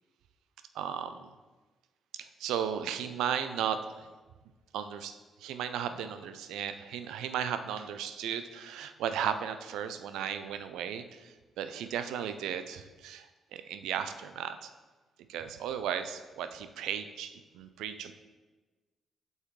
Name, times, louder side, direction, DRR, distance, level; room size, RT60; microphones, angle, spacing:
voice 1, 0.8-1.3 2.2-4.1 4.7-13.3 13.5-14.7 15.3-18.1, right 9 dB, 85° right, 10 dB, 0.4 m, -35 dB
8.3 x 5.5 x 3.1 m, 1.3 s
supercardioid pair, 60°, 0 cm